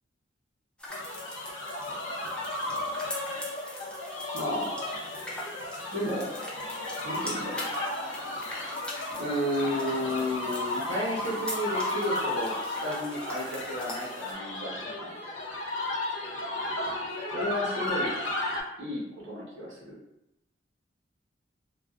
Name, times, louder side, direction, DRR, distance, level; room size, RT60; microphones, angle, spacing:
sound 1, 0.8-14.3, left 1 dB, 5° left, 0.4 m, -43 dB
sound 2, 0.9-18.6, left 1 dB, 90° left, 0.5 m, -34 dB
voice 1, 4.3-4.7 5.9-6.3 7.0-7.7 9.2-15.1 17.3-18.1 18.8-19.8, left 1 dB, 80° right, -5 dB, 0.9 m, -32 dB
2.4 x 2.2 x 2.4 m, 0.87 s
head